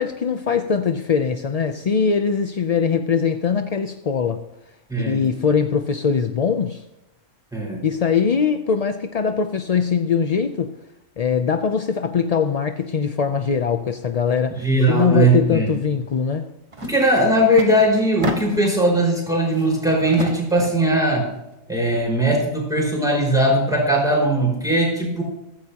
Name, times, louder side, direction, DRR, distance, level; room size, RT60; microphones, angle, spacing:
voice 1, 0.0-4.4 5.0-6.8 7.8-10.7 11.2-16.5, left 6 dB, 50° left, 0.4 m, -21 dB
voice 2, 4.9-5.2 7.5-7.8 14.6-15.7 16.8-21.3 21.7-25.2, right 1 dB, 5° right, 5.1 m, -19 dB
sound 1, 16.7-17.0 17.3-18.8 19.3-20.8, right 1 dB, 25° right, 1.3 m, -31 dB
15.5 x 15.0 x 2.9 m
omnidirectional pair, 1.4 m